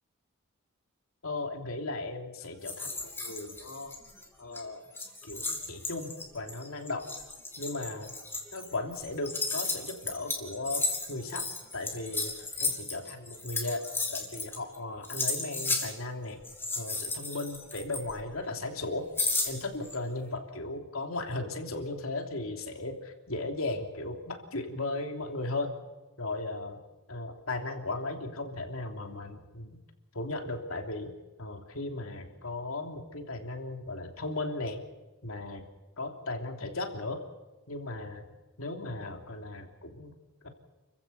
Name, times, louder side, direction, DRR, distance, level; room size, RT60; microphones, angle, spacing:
voice 1, 1.2-3.9 4.4-4.8 5.2-7.1 7.6-8.1 8.5-11.5 11.7-13.8 14.1-16.4 16.8-19.1 19.4-25.7 26.2-26.8 27.1-29.8 30.1-31.1 31.4-34.8 35.2-35.6 36.0-37.2 37.7-38.2 38.6-40.1 40.4-40.5, left 2 dB, 75° left, 4 dB, 3.1 m, -36 dB
sound 1, 2.6-4.2 4.5-4.6 4.9-14.8 15.0-15.9 16.4-18.4 19.2-20.0, left 3 dB, 10° left, 3.2 m, -34 dB
29.5 x 15.5 x 6.9 m, 1.2 s
head